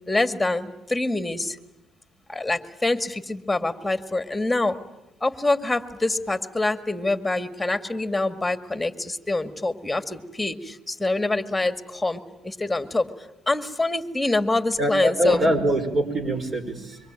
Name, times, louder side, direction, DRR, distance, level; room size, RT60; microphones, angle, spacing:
voice 1, 0.1-1.5 2.3-4.8 5.2-10.6 10.9-11.7 12.0-12.2 12.5-13.1 13.5-15.4, left 2 dB, 10° left, 9 dB, 2.1 m, -25 dB
voice 2, 14.8-17.0, right 1 dB, 40° right, 8 dB, 5.1 m, -23 dB
25.5 x 24.0 x 9.1 m, 0.92 s
supercardioid pair, 75°, 0 cm